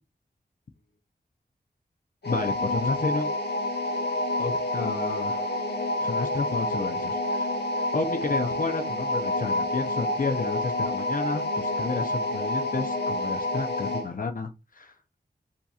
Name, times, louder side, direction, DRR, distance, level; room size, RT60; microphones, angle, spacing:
sound 1, 2.2-14.1, left 1 dB, 75° left, 1.2 m, -28 dB
voice 1, 2.2-3.3 4.4-5.5 6.0-7.5 7.8-14.9, left 4 dB, 55° left, 0.6 m, -31 dB
6.9 x 2.8 x 2.4 m
wide cardioid pair, 65°, 17 cm